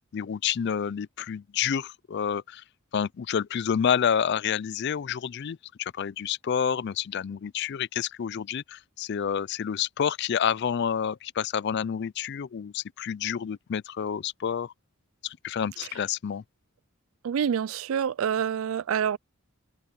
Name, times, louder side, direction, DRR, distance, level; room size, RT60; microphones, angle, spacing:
voice 1, 0.1-2.6 2.9-14.7 15.2-16.4, left 8 dB, 50° left, 0.3 m, -29 dB
voice 2, 17.2-19.2, right 8 dB, 70° right, 0.3 m, -27 dB
open air
head